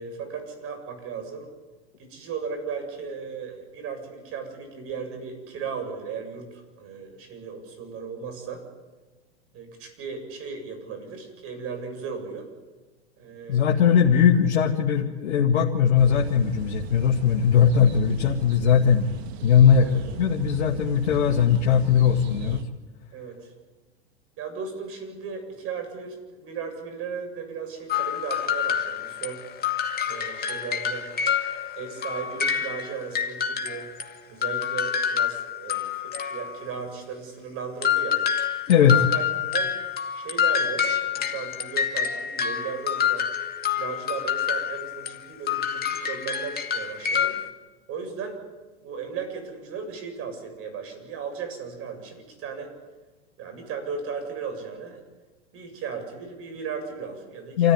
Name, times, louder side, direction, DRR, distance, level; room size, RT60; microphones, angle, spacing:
voice 1, 0.0-1.5 2.0-8.6 9.5-12.5 13.2-14.0 19.8-20.0 23.1-23.5 24.4-29.4 30.1-31.1 31.8-33.9 34.3-38.2 38.7-39.7 40.1-43.3 43.8-47.3 47.9-48.4 48.8-52.7 53.4-55.0 55.5-57.7, right 6 dB, 40° right, 6 dB, 7.2 m, -36 dB
voice 2, 13.5-19.1 19.4-19.9 20.2-22.6 38.7-39.0 57.6-57.7, left 8 dB, 75° left, 1 dB, 1.9 m, -19 dB
sound 1, 16.0-22.6, right 6 dB, 70° right, 1.8 m, -36 dB
sound 2, 27.9-34.1 34.4-36.8 37.8-45.2 45.5-47.5, left 8 dB, 30° left, 2.3 m, -27 dB
28.0 x 14.5 x 9.7 m, 1.2 s
hypercardioid pair, 105°, 33 cm